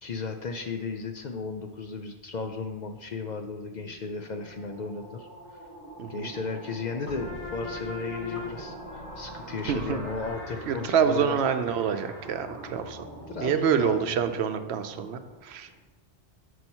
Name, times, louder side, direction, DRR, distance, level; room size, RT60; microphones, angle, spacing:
voice 1, 0.0-5.3 6.1-11.4 13.3-14.1, left 4 dB, 55° left, 5 dB, 0.5 m, -35 dB
sound 1, 3.4-15.8, right 1 dB, 15° left, 2.1 m, -46 dB
sound 2, 7.1-14.4, left 3 dB, 35° left, 0.9 m, -42 dB
voice 2, 9.7-10.0 10.7-13.1 13.4-15.7, right 7 dB, 80° right, 9 dB, 0.8 m, -27 dB
6.3 x 4.5 x 5.4 m, 1.2 s
omnidirectional pair, 1.1 m